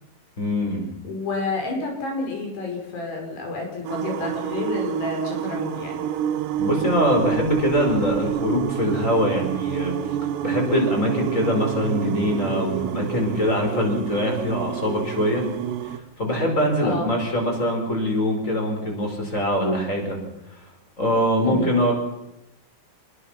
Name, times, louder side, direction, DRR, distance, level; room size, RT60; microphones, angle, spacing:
voice 1, 0.4-0.8 6.6-9.9 10.4-15.4 16.2-20.2 21.0-21.9, equal, 15° left, 2 dB, 5.3 m, -23 dB
voice 2, 1.0-6.0 16.8-17.1 21.4-21.7, left 3 dB, 75° left, 2 dB, 7.5 m, -29 dB
sound 1, 3.9-16.0, right 10 dB, 90° right, 3.3 m, -28 dB
26.5 x 20.5 x 6.0 m, 0.87 s
omnidirectional pair, 4.8 m